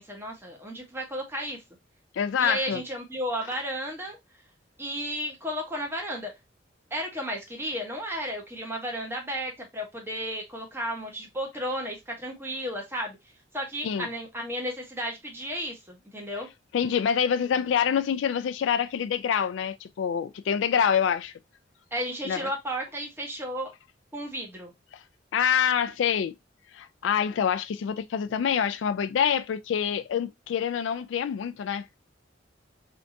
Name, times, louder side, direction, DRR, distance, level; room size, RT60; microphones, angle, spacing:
voice 1, 0.0-1.6 2.4-4.2 4.8-6.3 6.9-13.2 13.5-16.5 21.9-23.7 24.1-24.7, equal, 15° right, 1.0 m, -33 dB
voice 2, 2.1-2.8 13.8-14.1 16.7-21.3 22.2-22.5 25.3-26.3 26.7-31.8, left 8 dB, 80° left, 0.3 m, -26 dB
3.4 x 2.6 x 2.6 m
head